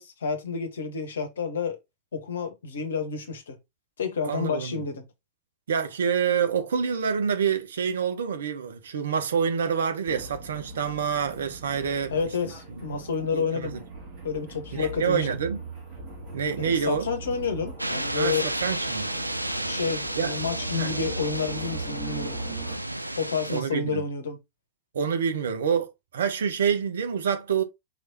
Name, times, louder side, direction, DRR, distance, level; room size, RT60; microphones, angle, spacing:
voice 1, 0.0-1.8 2.1-3.6 4.0-5.1 12.1-13.8 14.2-15.3 16.6-18.5 19.6-22.4 23.2-24.4, left 5 dB, 65° left, 1.0 m, -30 dB
voice 2, 4.3-4.8 5.7-12.2 13.3-13.7 14.7-15.6 16.3-17.1 18.1-18.4 18.6-19.1 20.2-20.3 20.7-20.9 23.5-24.0 24.9-27.6, right 7 dB, 65° right, 0.7 m, -27 dB
sound 1, 10.1-22.8, right 3 dB, 40° right, 2.2 m, -39 dB
sound 2, 17.8-23.6, right 1 dB, 85° right, 0.3 m, -32 dB
4.9 x 3.2 x 2.7 m
figure-of-eight pair, 90°, 0 cm